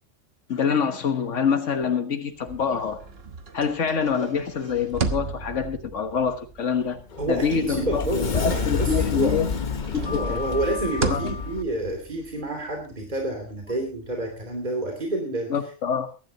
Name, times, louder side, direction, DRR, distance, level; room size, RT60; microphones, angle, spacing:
voice 1, 0.5-3.0 3.5-7.0 7.3-8.1 8.3-9.5 9.9-10.4 11.1-11.3 15.5-16.1, left 6 dB, 90° left, 6 dB, 1.6 m, -25 dB
sound 1, 2.4-8.8 9.2-14.6, right 4 dB, 55° right, 1.6 m, -36 dB
Sliding door, 6.8-11.6, left 5 dB, 40° left, 1.1 m, -28 dB
voice 2, 7.2-9.4 9.9-15.6, right 1 dB, 40° right, 2 dB, 3.1 m, -29 dB
23.0 x 11.5 x 2.9 m, 0.33 s
omnidirectional pair, 1.2 m